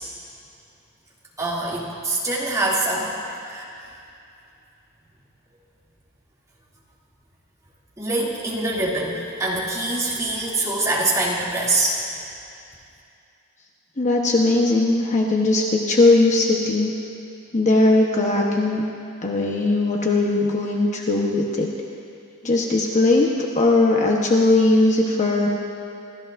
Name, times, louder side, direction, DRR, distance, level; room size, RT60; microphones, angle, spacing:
voice 1, 1.4-3.1 3.5-3.7 8.0-12.0, right 2 dB, 15° right, -6 dB, 2.7 m, -24 dB
voice 2, 14.0-16.9 17.5-18.8 19.2-21.7 22.4-23.3 23.5-25.5, left 2 dB, 35° left, -1 dB, 1.1 m, -19 dB
27.0 x 14.5 x 2.7 m, 2.6 s
head